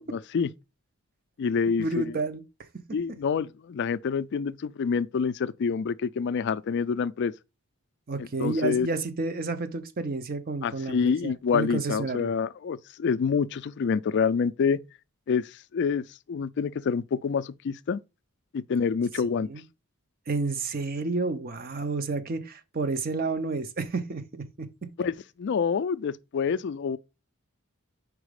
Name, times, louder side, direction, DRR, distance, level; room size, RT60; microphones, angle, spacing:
voice 1, 0.1-0.5 1.4-2.0 2.9-7.3 8.2-8.9 10.6-14.8 15.3-18.0 18.5-19.5 25.0-27.0, left 6 dB, 50° left, 0.3 m, -27 dB
voice 2, 1.8-2.4 2.9-3.0 8.1-12.3 19.4-19.6 20.3-24.9, right 3 dB, 40° right, 0.6 m, -30 dB
4.8 x 4.0 x 5.0 m
head